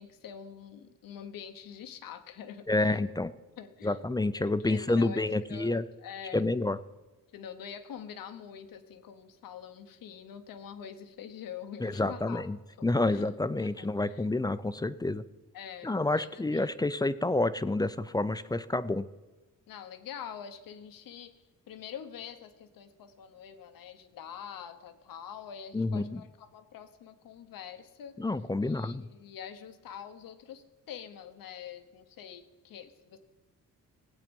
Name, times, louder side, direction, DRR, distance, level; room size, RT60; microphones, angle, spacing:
voice 1, 0.0-3.0 3.6-4.0 4.4-6.4 7.3-12.5 12.8-13.2 13.6-14.3 15.5-16.8 19.7-21.3 21.7-28.2 28.6-33.2, left 8 dB, 90° left, 9 dB, 1.1 m, -45 dB
voice 2, 2.7-3.3 3.8-5.8 6.3-6.8 11.8-12.6 12.8-15.2 15.8-19.1 25.7-26.2 28.2-29.1, left 2 dB, 10° left, 13 dB, 0.4 m, -29 dB
18.5 x 8.4 x 5.3 m, 1.1 s
cardioid pair, 125°, 33 cm